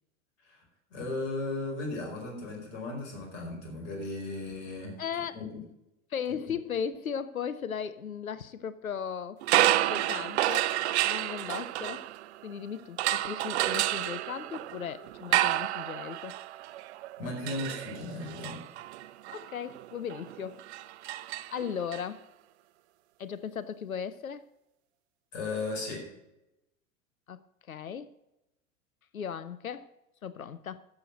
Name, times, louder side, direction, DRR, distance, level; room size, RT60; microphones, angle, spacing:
voice 1, 0.9-5.0 5.3-5.6 17.2-18.6 25.3-26.1, left 2 dB, 50° left, 5.0 m, -36 dB
voice 2, 5.0-5.4 6.1-9.4 9.8-10.7 11.0-12.1 12.4-16.4 19.3-20.6 21.1-21.2 21.5-22.2 23.2-24.5 27.3-27.4 27.7-28.1 29.1-29.9 30.2-30.8, left 7 dB, 85° left, 0.6 m, -37 dB
sound 1, 9.4-12.5 13.0-22.0, right 14 dB, 55° right, 0.6 m, -30 dB
12.0 x 7.2 x 6.3 m
figure-of-eight pair, 85°, 41 cm